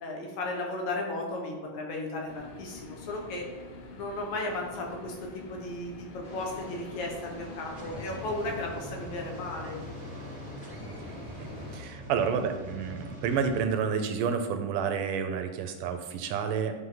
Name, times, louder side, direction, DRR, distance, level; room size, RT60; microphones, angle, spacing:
voice 1, 0.0-3.5 3.9-9.8, left 2 dB, 65° left, 1 dB, 2.5 m, -35 dB
sound 1, 2.3-8.8, left 3 dB, 80° left, 1.3 m, -47 dB
sound 2, 6.2-11.8, left 2 dB, 40° left, 0.5 m, -45 dB
sound 3, 7.7-13.6, equal, 40° right, 0.6 m, -43 dB
voice 2, 11.4-16.7, right 6 dB, 80° right, 6 dB, 2.1 m, -30 dB
11.0 x 6.1 x 3.9 m, 1.4 s
omnidirectional pair, 4.1 m